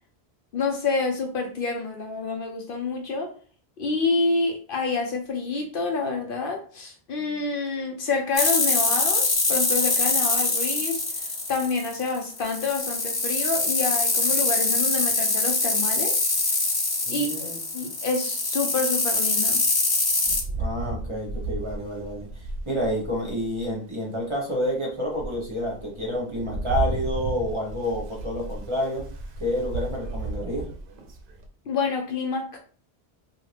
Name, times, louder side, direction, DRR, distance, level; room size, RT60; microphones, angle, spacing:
voice 1, 0.5-3.3 3.8-16.3 17.1-19.6 31.7-32.6, left 4 dB, 65° left, 3 dB, 0.7 m, -28 dB
sound 1, 8.3-20.4, left 3 dB, 35° left, 0.4 m, -24 dB
voice 2, 17.1-17.6 20.5-22.3 22.7-29.1 29.4-30.7, left 1 dB, 30° right, -2 dB, 0.9 m, -29 dB
Rain, 20.2-23.8 24.3-24.4 24.9-31.5, right 3 dB, 65° right, 0.7 m, -34 dB
2.6 x 2.4 x 3.2 m, 0.40 s
omnidirectional pair, 1.1 m